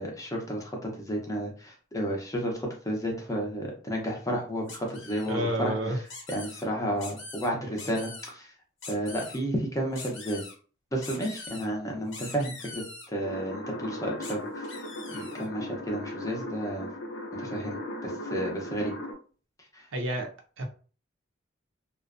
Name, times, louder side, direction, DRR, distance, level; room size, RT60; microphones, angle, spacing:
voice 1, 0.0-5.7 6.3-8.5 8.9-10.4 10.9-12.8 13.1-16.9 17.4-17.8 18.0-18.9 19.7-19.9, equal, 15° left, 0.6 m, -32 dB
sound 1, 4.7-5.3 6.1-6.6 7.0-7.5 7.8-8.3 8.8-9.4 10.0-10.5 11.0-11.7 12.1-13.1 14.2-14.3 14.6-15.5, left 3 dB, 85° left, 1.0 m, -43 dB
voice 2, 5.3-6.0 19.9-20.3 20.6-20.7, right 1 dB, 70° right, 0.6 m, -29 dB
sound 2, 13.2-19.1, left 1 dB, 65° left, 0.6 m, -37 dB
2.4 x 2.1 x 2.4 m
head